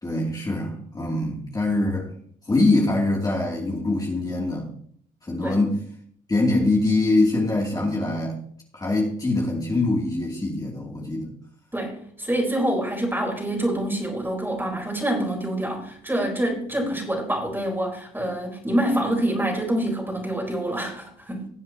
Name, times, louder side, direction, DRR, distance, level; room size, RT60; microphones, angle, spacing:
voice 1, 0.0-2.1 2.5-4.7 5.2-5.8 6.3-8.4 8.7-11.3, left 2 dB, 20° left, -3 dB, 3.1 m, -23 dB
voice 2, 11.7-21.5, right 1 dB, 10° right, 0 dB, 4.4 m, -26 dB
19.5 x 7.5 x 3.0 m, 0.62 s
hypercardioid pair, 60°, 19 cm